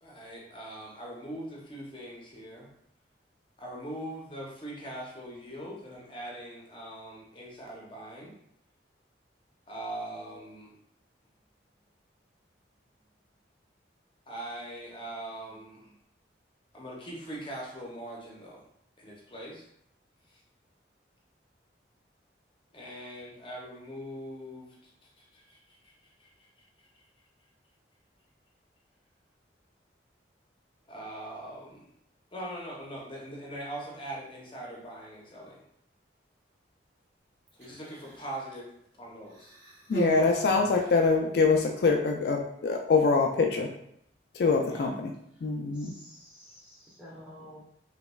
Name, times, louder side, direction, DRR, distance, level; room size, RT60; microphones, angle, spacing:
voice 1, 0.0-2.7 3.6-8.3 9.7-10.7 14.3-15.9 16.7-18.6 19.0-19.7 20.3-20.4 22.7-24.9 25.2-26.5 26.9-27.0 30.9-31.9 32.3-35.6 37.5-38.7 39.0-39.5 44.7-44.9, right 1 dB, 25° left, -3 dB, 0.7 m, -42 dB
Human voice, 37.5-38.4 39.3-41.2 42.1-42.3, right 3 dB, 80° right, 1.1 m, -39 dB
voice 2, 39.9-43.7 44.4-45.1 45.4-45.9, left 4 dB, 60° left, 1 dB, 0.3 m, -24 dB
voice 3, 45.7-47.6, equal, 5° right, -7 dB, 0.9 m, -50 dB
3.3 x 3.0 x 2.2 m, 0.72 s
head